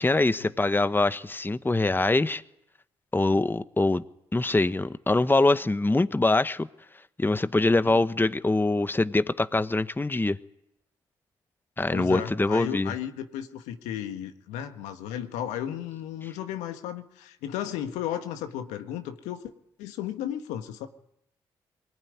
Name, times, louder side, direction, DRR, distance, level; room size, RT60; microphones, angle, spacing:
voice 1, 0.0-2.4 3.1-4.0 4.3-6.7 7.2-10.4 11.8-12.9, left 2 dB, 15° left, 1.2 m, -24 dB
voice 2, 11.9-19.4 19.8-20.9, left 10 dB, 80° left, 1.7 m, -34 dB
23.5 x 20.5 x 9.7 m
hypercardioid pair, 45°, 12 cm